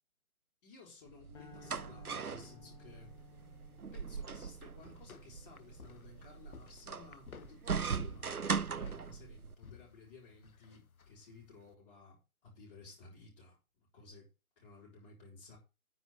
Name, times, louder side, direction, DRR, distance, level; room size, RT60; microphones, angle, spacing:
voice 1, 0.6-3.1 3.9-14.3 14.6-15.6, left 4 dB, 30° left, -8 dB, 6.1 m, -56 dB
sound 1, 1.1-9.5, right 6 dB, 85° right, 0.8 m, -40 dB
sound 2, 1.3-7.7, left 5 dB, 5° left, 1.4 m, -60 dB
sound 3, 2.9-11.8, left 6 dB, 75° left, 1.1 m, -58 dB
9.9 x 6.4 x 7.0 m, 0.30 s
figure-of-eight pair, 145°, 43 cm